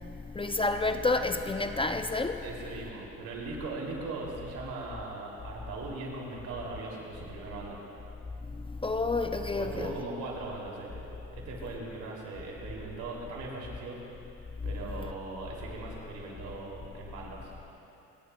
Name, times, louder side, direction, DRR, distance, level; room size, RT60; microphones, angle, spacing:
voice 1, 0.3-2.4 8.8-9.9, left 3 dB, 20° left, 7 dB, 0.4 m, -29 dB
voice 2, 2.4-7.8 9.5-14.0 14.6-17.7, right 3 dB, 85° right, -3 dB, 2.7 m, -39 dB
27.0 x 10.5 x 2.2 m, 2.9 s
cardioid pair, 90°, 30 cm